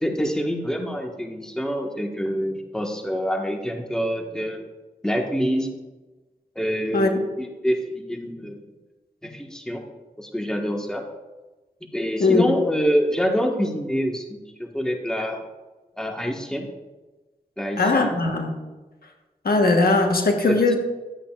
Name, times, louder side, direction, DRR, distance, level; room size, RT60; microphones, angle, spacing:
voice 1, 0.0-4.6 5.0-5.7 6.5-8.6 9.2-9.8 10.2-11.1 11.9-15.4 16.0-16.7 17.6-18.2 20.5-20.6, equal, 5° left, 1 dB, 1.5 m, -26 dB
voice 2, 6.9-7.3 12.2-12.5 17.8-18.6 19.4-20.7, left 3 dB, 70° left, 3 dB, 1.3 m, -19 dB
12.0 x 8.2 x 2.4 m, 1.2 s
cardioid pair, 45°, 16 cm